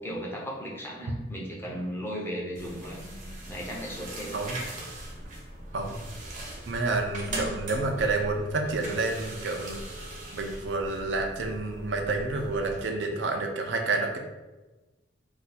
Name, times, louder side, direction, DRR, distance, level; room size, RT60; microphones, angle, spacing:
voice 1, 0.0-3.0 3.4-4.4 7.3-7.6, equal, 15° left, -3 dB, 0.6 m, -36 dB
sound 1, 2.6-12.8, right 1 dB, 45° right, 0.7 m, -40 dB
voice 2, 4.3-4.7 5.7-6.0 6.7-9.8 10.3-14.2, right 3 dB, 80° right, 3 dB, 0.5 m, -29 dB
2.7 x 2.3 x 4.1 m, 1.1 s
head